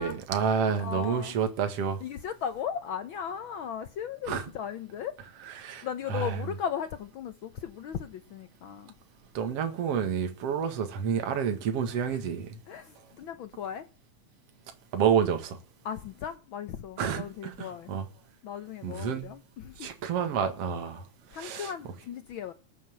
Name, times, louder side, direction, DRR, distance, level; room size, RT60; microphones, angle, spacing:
voice 1, 0.0-2.0 4.3-4.4 5.5-6.4 9.3-12.6 14.9-15.6 17.0-18.1 18.8-19.3 19.8-21.1 21.3-21.7, right 7 dB, 55° right, 2.8 m, -29 dB
voice 2, 0.8-1.4 2.0-5.2 5.8-8.9 12.1-12.2 12.7-13.9 15.8-17.9 18.4-19.9 21.3-22.5, left 8 dB, 90° left, 1.1 m, -37 dB
19.5 x 7.6 x 7.4 m
omnidirectional pair, 3.4 m